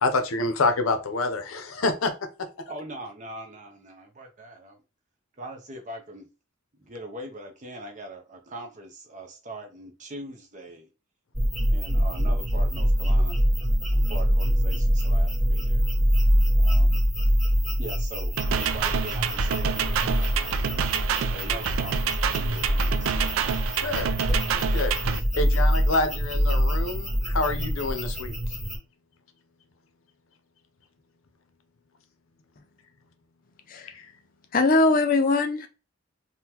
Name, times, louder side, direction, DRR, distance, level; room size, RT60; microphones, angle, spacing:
voice 1, 0.0-2.1 23.8-24.9 25.4-28.4 33.9-34.1, left 2 dB, 85° left, 0.6 m, -27 dB
voice 2, 2.7-4.8 5.4-6.3 6.7-10.9 11.7-13.4 13.9-15.8 16.5-17.0 17.8-20.8 21.3-23.2, right 1 dB, 40° right, 0.6 m, -41 dB
sound 1, 11.3-28.8, equal, ahead, 1.3 m, -24 dB
sound 2, 18.4-25.2, right 8 dB, 85° right, 0.3 m, -28 dB
voice 3, 34.5-35.7, left 3 dB, 45° left, 0.5 m, -21 dB
3.6 x 2.2 x 2.9 m
head